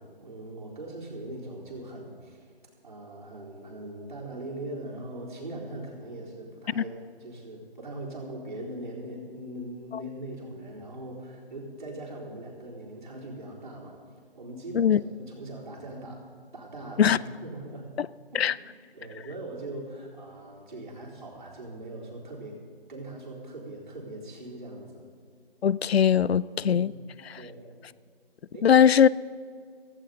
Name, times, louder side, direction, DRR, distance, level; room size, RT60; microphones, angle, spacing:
voice 1, 0.0-2.5 2.8-14.0 14.3-16.2 16.5-17.9 18.3-18.4 18.9-22.6 22.9-25.1 26.6-26.9 27.4-27.7 28.5-28.7, right 1 dB, 50° right, 4.0 m, -40 dB
voice 2, 25.6-26.9 28.6-29.1, left 8 dB, 80° left, 0.5 m, -20 dB
16.5 x 15.5 x 3.9 m
hypercardioid pair, 180°, 31 cm